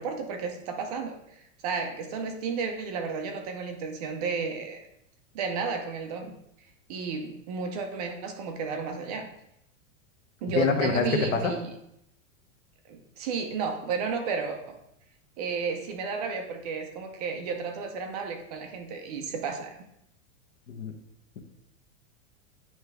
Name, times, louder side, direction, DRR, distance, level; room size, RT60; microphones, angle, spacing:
voice 1, 0.0-4.8 5.3-6.3 6.9-9.3 10.4-11.7 12.9-14.7 15.4-19.7, right 5 dB, 35° right, 4 dB, 0.5 m, -33 dB
voice 2, 10.5-11.5 20.7-20.9, left 4 dB, 75° left, 5 dB, 1.2 m, -25 dB
9.4 x 3.3 x 3.4 m, 0.79 s
supercardioid pair, 175°, 38 cm